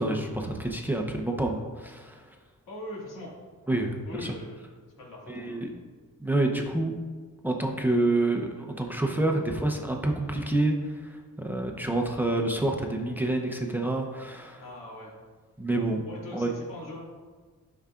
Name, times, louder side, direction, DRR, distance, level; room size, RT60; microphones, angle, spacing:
voice 1, 0.0-2.2 3.7-4.3 5.3-5.7 6.2-6.9 7.4-14.6 15.6-16.0 16.3-16.5, right 2 dB, 5° right, 2 dB, 0.7 m, -28 dB
voice 2, 2.7-3.3 4.0-4.6 5.0-5.6 14.6-15.1 16.0-17.0, left 2 dB, 85° left, -4 dB, 2.2 m, -41 dB
11.0 x 5.6 x 2.4 m, 1.4 s
cardioid pair, 110°, 32 cm